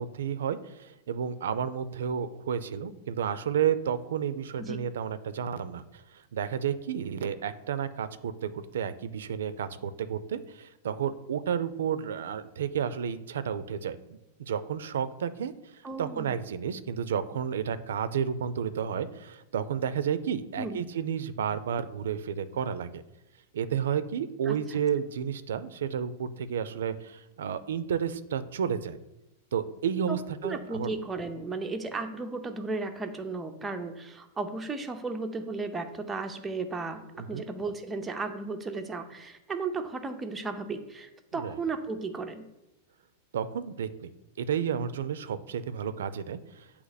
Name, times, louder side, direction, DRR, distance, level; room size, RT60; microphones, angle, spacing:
voice 1, 0.0-6.0 6.3-15.5 16.0-23.0 23.5-29.0 29.5-30.9 37.1-37.4 41.3-41.5 43.3-44.1 44.4-46.7, right 8 dB, 90° right, 13 dB, 0.4 m, -31 dB
voice 2, 15.8-16.4 20.6-20.8 24.5-24.8 30.1-30.2 30.4-42.5, right 3 dB, 10° right, 5 dB, 0.5 m, -35 dB
8.1 x 2.9 x 4.0 m, 0.92 s
supercardioid pair, 155°, 0 cm